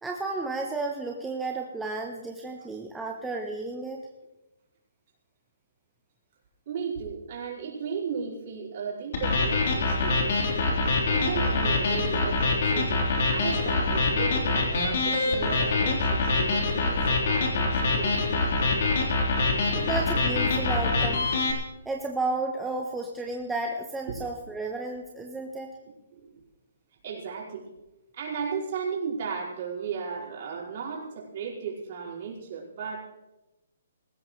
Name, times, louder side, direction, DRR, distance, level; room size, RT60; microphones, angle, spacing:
voice 1, 0.0-4.0 19.7-21.3 21.8-25.7, right 2 dB, 5° right, 0 dB, 0.8 m, -32 dB
voice 2, 6.6-10.6 10.8-13.0 13.3-18.2 24.1-24.2 26.1-26.4 27.0-27.7 28.1-33.0, right 6 dB, 40° right, -4 dB, 5.0 m, -35 dB
sound 1, 9.1-21.5, left 3 dB, 55° left, 3.6 m, -25 dB
18.5 x 16.0 x 3.2 m, 1.0 s
hypercardioid pair, 165°, 0 cm